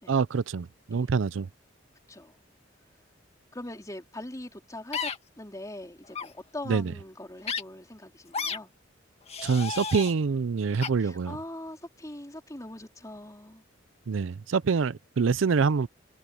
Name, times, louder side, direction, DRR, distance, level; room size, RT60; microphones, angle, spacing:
voice 1, 0.1-1.5 6.7-6.9 9.4-11.4 14.1-15.9, right 5 dB, 80° right, 0.5 m, -26 dB
voice 2, 3.5-5.1 5.4-8.7 11.0-13.6, left 1 dB, 20° left, 4.2 m, -41 dB
sound 1, 4.9-5.2 6.1-6.3 7.4-7.6 8.3-8.6 9.3-10.1 10.8-10.9, left 6 dB, 35° left, 2.1 m, -32 dB
head